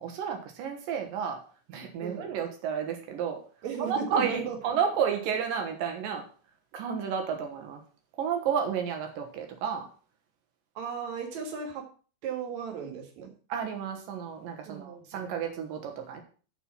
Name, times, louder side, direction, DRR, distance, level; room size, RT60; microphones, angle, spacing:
voice 1, 0.0-1.4 1.7-3.4 3.8-6.3 6.7-7.8 8.2-9.9 13.5-16.2, right 7 dB, 90° right, 4 dB, 3.0 m, -31 dB
voice 2, 3.6-4.6 10.7-11.9 12.2-13.3 14.7-15.3, right 6 dB, 60° right, 3 dB, 2.8 m, -36 dB
12.0 x 4.6 x 5.5 m, 0.39 s
omnidirectional pair, 3.8 m